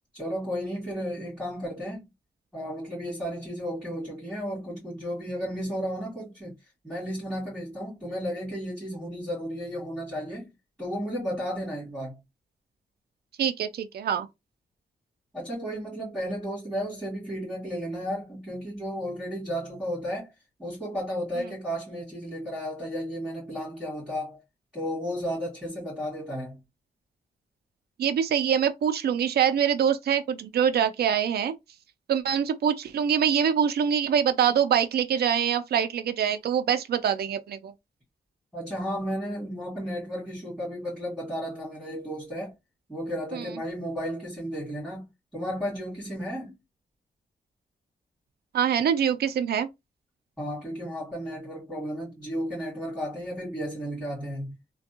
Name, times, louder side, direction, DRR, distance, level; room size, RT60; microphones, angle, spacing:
voice 1, 0.1-2.1 2.5-6.5 6.8-10.5 10.8-12.2 15.3-20.3 20.6-24.4 24.7-26.6 38.5-42.5 42.9-45.1 45.3-46.5 50.4-54.6, equal, ahead, 2.2 m, -33 dB
voice 2, 13.4-14.3 28.0-31.5 32.1-37.7 43.3-43.5 48.5-49.7, right 8 dB, 70° right, 0.4 m, -24 dB
3.4 x 2.2 x 2.8 m
wide cardioid pair, 160°, 17 cm